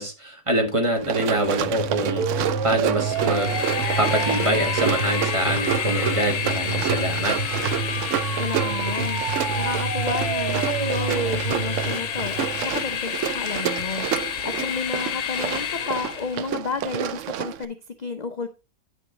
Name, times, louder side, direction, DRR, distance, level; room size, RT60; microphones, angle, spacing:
voice 1, 0.0-3.5 4.0-7.4, right 1 dB, 20° right, 1.6 m, -25 dB
Run, 1.0-17.6, right 10 dB, 65° right, 0.8 m, -29 dB
sound 1, 1.2-13.0, right 4 dB, 90° right, 1.3 m, -29 dB
Train, 2.9-16.4, left 8 dB, 85° left, 1.4 m, -30 dB
voice 2, 8.4-9.2 9.6-18.5, left 4 dB, 45° left, 0.5 m, -32 dB
9.0 x 6.2 x 3.9 m
omnidirectional pair, 1.6 m